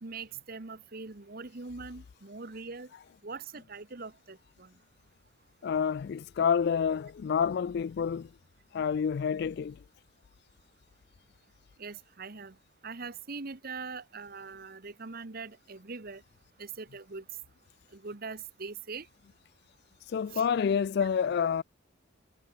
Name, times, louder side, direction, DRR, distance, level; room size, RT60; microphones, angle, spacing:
voice 1, 0.0-2.9 3.2-4.8 11.8-12.6 12.8-16.2 16.6-17.2 17.9-19.1 20.3-20.5, right 4 dB, 50° right, 1.2 m, -42 dB
voice 2, 5.6-8.3 8.7-9.8 20.0-21.6, left 7 dB, 55° left, 0.3 m, -28 dB
head